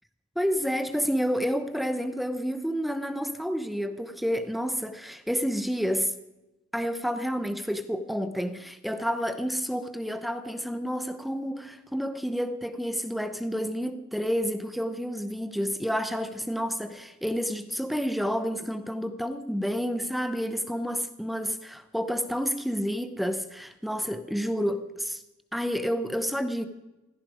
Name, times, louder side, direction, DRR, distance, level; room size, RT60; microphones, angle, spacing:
voice 1, 0.4-6.1 6.7-25.2 25.5-26.7, equal, ahead, 0.7 m, -29 dB
16.5 x 14.0 x 5.0 m
head